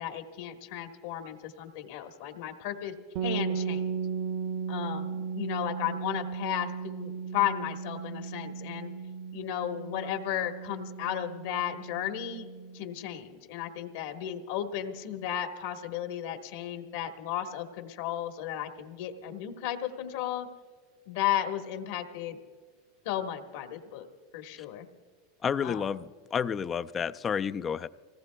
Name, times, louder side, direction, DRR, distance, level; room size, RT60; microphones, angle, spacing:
voice 1, 0.0-2.9 3.2-3.9 4.7-8.9 9.3-12.5 12.7-20.5 21.1-22.4 23.0-24.1 24.3-24.9 25.6-25.9, left 11 dB, 70° left, 5 dB, 1.3 m, -34 dB
sound 1, 3.1-12.9, right 6 dB, 55° right, 0.7 m, -36 dB
voice 2, 25.4-26.0 26.3-27.9, left 7 dB, 25° left, 13 dB, 0.3 m, -30 dB
27.0 x 18.5 x 2.3 m, 1.5 s
supercardioid pair, 140°, 0 cm